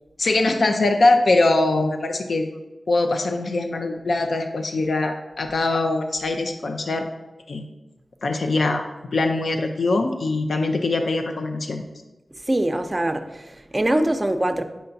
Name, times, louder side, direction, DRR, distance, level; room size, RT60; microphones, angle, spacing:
voice 1, 0.2-2.5 2.9-7.1 7.5-7.6 8.2-8.8 9.1-11.8, left 2 dB, 75° left, 0.5 m, -22 dB
voice 2, 12.4-14.6, right 1 dB, 25° right, 0.6 m, -23 dB
8.9 x 5.6 x 2.6 m
cardioid pair, 55°, 0 cm